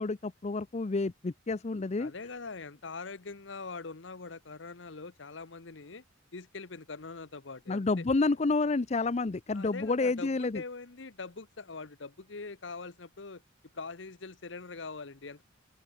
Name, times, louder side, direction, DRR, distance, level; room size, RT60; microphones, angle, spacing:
voice 1, 0.0-2.1 7.7-10.6, left 3 dB, 35° left, 0.5 m, -29 dB
voice 2, 2.0-6.0 6.3-8.0 9.5-13.4 13.7-15.4, left 4 dB, 65° left, 1.1 m, -43 dB
open air
head